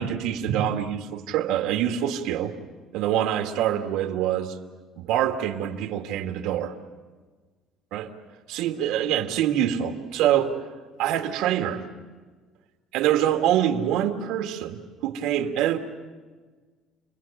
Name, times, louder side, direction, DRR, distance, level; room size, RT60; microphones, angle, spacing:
voice 1, 0.0-2.6 2.9-4.5 5.0-6.8 7.9-8.1 8.5-10.6 11.0-11.8 12.9-15.8, right 10 dB, 80° right, 2.3 m, -25 dB
29.5 x 22.5 x 8.8 m
cardioid pair, 165°, 0 cm